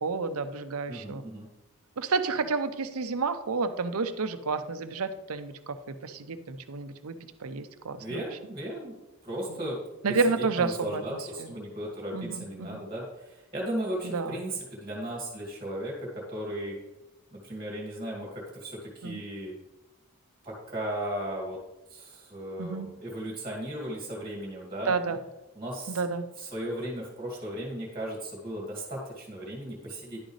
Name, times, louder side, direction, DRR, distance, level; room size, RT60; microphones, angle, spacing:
voice 1, 0.0-1.2 2.0-8.3 9.5-9.7 10.0-11.5 12.1-12.8 14.0-14.4 19.0-19.2 22.6-22.9 24.9-25.2 25.9-26.2, right 4 dB, 75° right, 10 dB, 0.6 m, -30 dB
voice 2, 0.9-1.5 8.0-9.0 9.2-9.8 10.1-16.8 17.3-19.6 20.4-21.6 21.9-24.9 25.5-26.0 26.4-30.3, right 1 dB, 20° right, -3 dB, 2.2 m, -36 dB
10.5 x 6.4 x 3.2 m, 1.0 s
head